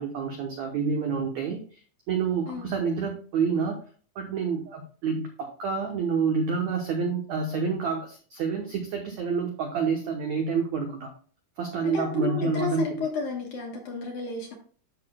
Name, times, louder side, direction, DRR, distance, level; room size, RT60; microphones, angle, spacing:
voice 1, 0.0-1.6 2.1-3.8 4.1-11.1 11.6-13.0, right 5 dB, 85° right, 2 dB, 1.6 m, -28 dB
voice 2, 11.8-14.6, left 5 dB, 65° left, 1 dB, 2.2 m, -32 dB
13.0 x 5.9 x 2.2 m, 0.42 s
omnidirectional pair, 4.7 m